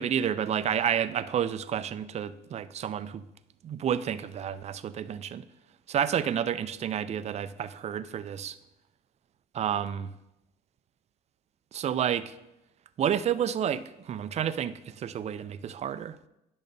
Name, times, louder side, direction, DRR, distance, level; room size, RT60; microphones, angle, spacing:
voice 1, 0.0-3.2 3.6-5.4 5.9-8.6 9.5-10.1 11.7-12.3 13.0-16.2, right 9 dB, 40° right, 13 dB, 0.4 m, -30 dB
10.5 x 6.3 x 2.7 m, 0.88 s
cardioid pair, 110°, 17 cm